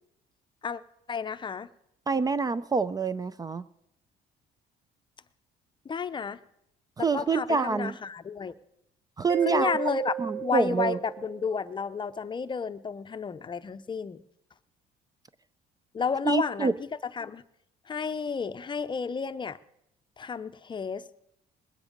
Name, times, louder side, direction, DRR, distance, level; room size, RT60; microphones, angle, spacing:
voice 1, 1.1-1.7 5.8-6.4 7.1-8.5 9.4-14.2 15.9-16.9 17.1-17.4 17.9-19.6 20.2-21.1, left 5 dB, 30° left, 12 dB, 0.6 m, -32 dB
voice 2, 2.1-3.6 7.0-7.9 9.2-9.7 10.2-11.0 16.3-16.7, right 5 dB, 20° right, 16 dB, 0.4 m, -26 dB
Mallet percussion, 9.3-11.8, right 12 dB, 75° right, 1.0 m, -35 dB
21.0 x 9.8 x 5.2 m, 0.79 s
cardioid pair, 110°, 17 cm